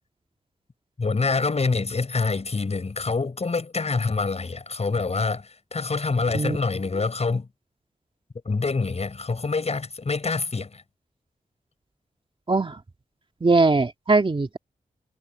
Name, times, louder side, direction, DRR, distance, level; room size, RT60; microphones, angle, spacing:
voice 1, 1.0-7.5 8.5-10.8, left 4 dB, 50° left, 5.7 m, -26 dB
voice 2, 13.4-14.6, right 3 dB, 35° right, 2.3 m, -20 dB
wide cardioid pair, 90°, 14 cm